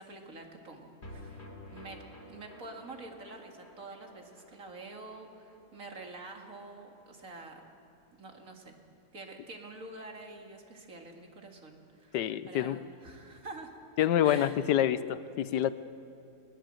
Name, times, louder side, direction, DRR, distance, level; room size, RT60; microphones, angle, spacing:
voice 1, 0.0-1.4 1.7-2.0 2.3-7.6 8.1-8.8 9.1-12.2 12.5-13.8 14.2-14.6, right 2 dB, 50° right, 2 dB, 2.6 m, -47 dB
sound 1, 1.0-7.4 7.7-7.8 8.1-8.2, left 1 dB, 35° left, 3.6 m, -52 dB
voice 2, 12.1-12.8 14.0-15.7, left 11 dB, 80° left, 15 dB, 1.3 m, -27 dB
21.0 x 20.5 x 7.7 m, 2.6 s
omnidirectional pair, 1.8 m